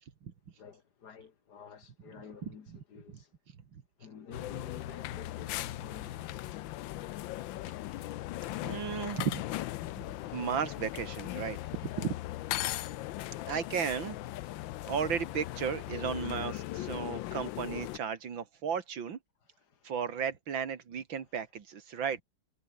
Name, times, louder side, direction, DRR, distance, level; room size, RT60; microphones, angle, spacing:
voice 1, 0.6-3.3 4.0-6.5 19.7-19.9, left 7 dB, 60° left, 2.1 m, -49 dB
sound 1, 4.3-18.0, left 16 dB, 90° left, 1.4 m, -38 dB
voice 2, 8.6-9.4 10.3-11.6 11.8-12.2 13.5-14.2 14.8-19.2 19.8-22.2, right 7 dB, 90° right, 2.7 m, -34 dB
omnidirectional pair, 2.0 m